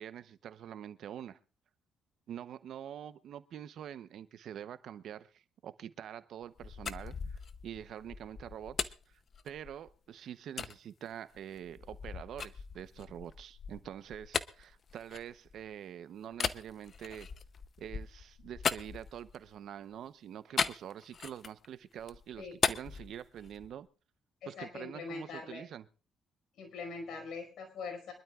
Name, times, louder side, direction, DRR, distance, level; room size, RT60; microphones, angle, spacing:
voice 1, 0.0-1.4 2.3-9.2 9.4-17.3 17.8-23.9 24.5-25.9, right 10 dB, 70° right, 0.8 m, -46 dB
sound 1, 6.4-9.9 10.6-10.8 11.3-15.7 16.3-19.6 20.6-21.7 22.0-23.8, left 6 dB, 45° left, 0.7 m, -38 dB
voice 2, 24.4-25.6 26.6-28.1, left 4 dB, 75° left, 5.2 m, -42 dB
25.0 x 12.0 x 2.4 m
cardioid pair, 90°, 0 cm